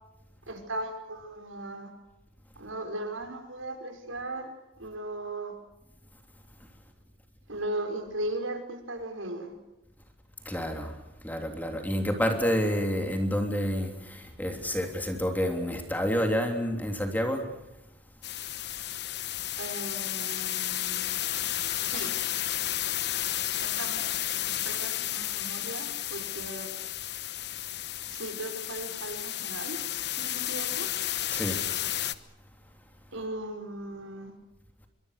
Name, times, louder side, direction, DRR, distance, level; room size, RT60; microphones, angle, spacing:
voice 1, 0.5-1.9 2.6-4.5 4.8-5.5 7.5-9.5 19.6-21.2 21.8-22.1 23.5-24.1 24.6-26.7 28.1-29.8 30.2-30.9 33.1-34.3, right 1 dB, 80° right, 6 dB, 5.6 m, -37 dB
voice 2, 10.4-11.0 11.2-17.5 31.3-31.7, equal, 10° left, 4 dB, 3.2 m, -29 dB
sound 1, 18.2-32.1, left 13 dB, 55° left, 1.1 m, -32 dB
24.5 x 24.0 x 6.7 m, 0.96 s
head